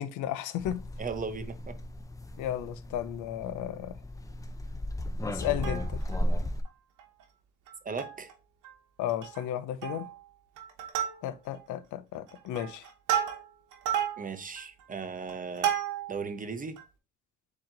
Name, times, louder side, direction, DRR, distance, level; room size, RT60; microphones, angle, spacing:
voice 1, 0.0-0.8 2.4-3.9 5.2-6.0 9.0-10.1 11.2-12.8, left 11 dB, 85° left, 0.5 m, -34 dB
sound 1, 0.6-6.6, left 1 dB, 10° left, 0.5 m, -35 dB
voice 2, 1.0-1.8 7.8-8.3 14.2-15.8 16.1-16.7, right 5 dB, 30° right, 0.6 m, -37 dB
Plucked string instrument, 5.4-6.2 6.6-6.7 7.0-7.2 7.7-8.3 8.6-8.7 9.1-9.5 9.8-10.2 10.6-11.6 12.1-16.2 16.8-16.9, right 10 dB, 90° right, 1.1 m, -33 dB
4.2 x 3.0 x 3.7 m
cardioid pair, 90°, 30 cm